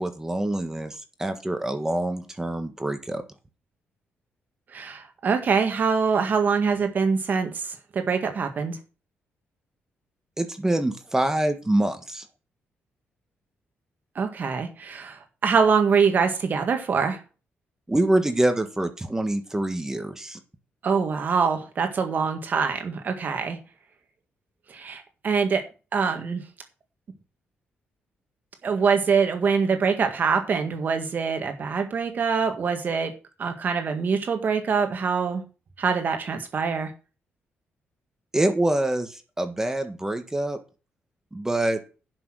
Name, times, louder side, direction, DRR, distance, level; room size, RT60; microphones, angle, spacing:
voice 1, 0.0-3.2 10.4-12.2 17.9-20.4 38.3-40.6 41.3-41.8, right 1 dB, 10° right, 8 dB, 1.5 m, -25 dB
voice 2, 4.7-8.8 14.2-17.2 20.8-23.6 24.7-25.6 25.9-26.4 28.6-33.1 33.4-35.4 35.8-36.9, right 5 dB, 50° right, 6 dB, 1.7 m, -24 dB
10.5 x 6.2 x 6.3 m, 0.33 s
cardioid pair, 115°, 4 cm